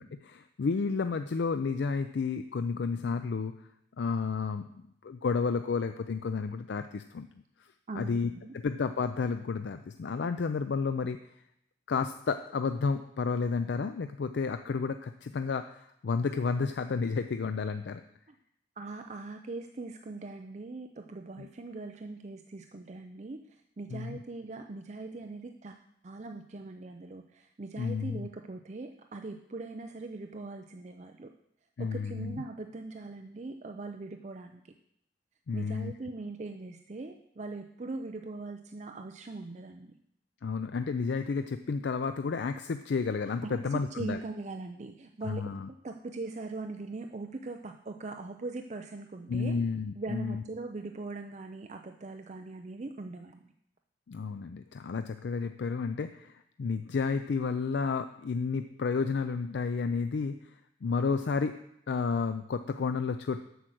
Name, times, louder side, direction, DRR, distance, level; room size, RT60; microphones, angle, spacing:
voice 1, 0.0-3.5 4.0-7.3 7.9-11.2 11.9-18.0 21.4-21.5 23.9-24.2 27.8-28.3 31.8-32.4 35.5-35.9 40.4-44.2 45.2-45.7 49.3-50.4 54.1-60.5 60.8-61.6 61.9-63.4, left 5 dB, 70° left, 9 dB, 0.4 m, -31 dB
voice 2, 7.9-8.5 18.8-23.4 23.8-25.8 26.0-31.3 31.8-34.6 35.5-39.9 43.4-43.6 44.0-45.4 45.8-49.5 49.9-53.4, right 3 dB, 40° right, 5 dB, 0.5 m, -41 dB
8.1 x 6.3 x 7.6 m, 0.76 s
head